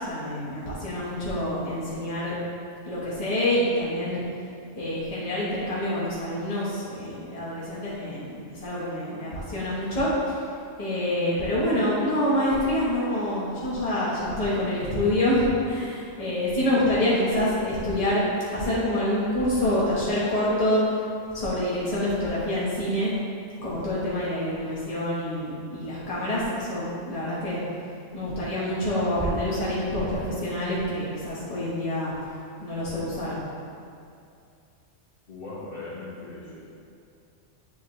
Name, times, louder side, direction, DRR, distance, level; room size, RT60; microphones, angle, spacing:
voice 1, 0.0-2.3 2.8-4.2 4.7-10.4 10.8-18.2 18.5-20.8 21.3-23.1 23.6-27.6 28.1-32.1 32.6-33.4, left 1 dB, 30° left, -9 dB, 1.4 m, -26 dB
voice 2, 35.3-36.6, left 2 dB, 45° left, -9 dB, 1.7 m, -39 dB
9.3 x 4.4 x 3.3 m, 2.5 s
omnidirectional pair, 1.3 m